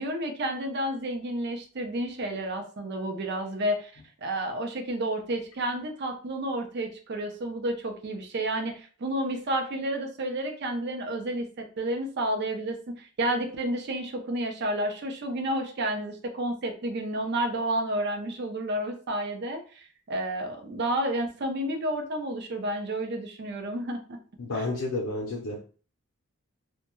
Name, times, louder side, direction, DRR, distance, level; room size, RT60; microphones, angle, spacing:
voice 1, 0.0-24.2 24.5-24.6, right 1 dB, 55° right, 4 dB, 0.5 m, -31 dB
voice 2, 24.4-25.6, left 2 dB, 85° left, -3 dB, 0.6 m, -31 dB
2.2 x 2.1 x 3.0 m, 0.40 s
head